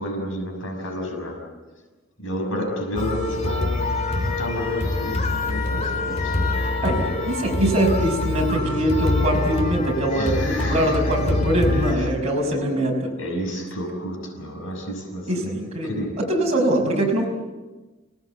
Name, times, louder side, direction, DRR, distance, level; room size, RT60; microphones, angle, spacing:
voice 1, 0.0-1.5 2.2-6.8 10.1-11.0 11.7-12.2 12.5-12.8 13.2-16.3, left 1 dB, 70° left, 6.1 m, -31 dB
sound 1, 3.0-11.9, left 2 dB, 30° left, 3.2 m, -25 dB
voice 2, 6.8-13.1 15.3-17.2, right 1 dB, 30° right, 5.8 m, -23 dB
30.0 x 18.5 x 8.3 m
head